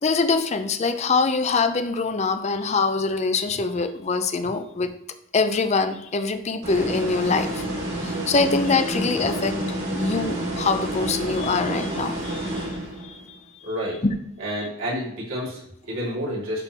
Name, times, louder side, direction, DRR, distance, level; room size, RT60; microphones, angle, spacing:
voice 1, 0.0-5.0 5.3-7.6 8.0-9.7 9.9-13.7 14.0-14.1, left 4 dB, 35° left, 9 dB, 0.5 m, -24 dB
sound 1, 6.6-13.2, right 1 dB, 55° right, 2.5 m, -29 dB
voice 2, 13.6-14.0 14.4-16.6, equal, 85° right, -6 dB, 2.7 m, -30 dB
10.5 x 3.7 x 3.0 m, 0.78 s
head